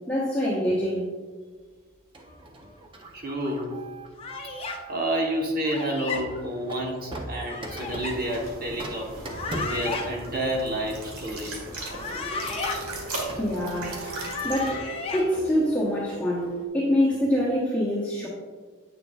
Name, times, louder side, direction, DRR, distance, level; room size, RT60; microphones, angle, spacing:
voice 1, 0.1-1.1 13.3-18.3, equal, 5° left, -8 dB, 0.9 m, -25 dB
Printer, 2.1-5.4 6.1-16.7, right 1 dB, 25° right, 0.6 m, -40 dB
voice 2, 3.1-3.8 4.9-9.2 9.5-11.6, right 1 dB, 40° right, 0 dB, 1.1 m, -29 dB
sound 1, 4.2-4.8 5.6-6.2 7.3-8.2 9.2-10.1 11.7-12.8 13.9-15.2, left 4 dB, 25° left, 0.6 m, -34 dB
sound 2, 7.6-14.6, right 2 dB, 85° right, 1.6 m, -38 dB
8.2 x 6.7 x 2.4 m, 1.5 s
head